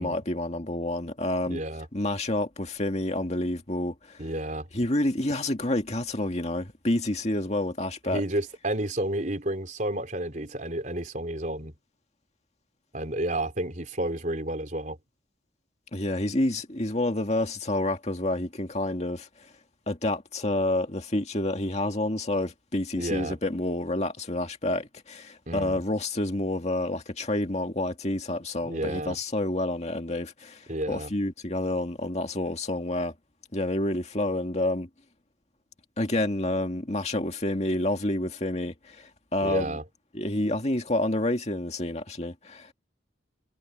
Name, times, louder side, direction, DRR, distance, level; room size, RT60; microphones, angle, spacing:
voice 1, 0.0-1.6 1.9-4.3 4.7-8.2 15.9-19.3 19.9-33.1 33.5-34.9 36.0-39.8 40.1-42.7, left 1 dB, 35° left, 2.1 m, -28 dB
voice 2, 1.5-1.9 4.2-4.7 8.1-11.7 12.9-15.0 23.0-23.4 25.5-25.8 28.7-29.2 30.7-31.1 39.4-39.8, right 1 dB, 45° right, 4.2 m, -31 dB
head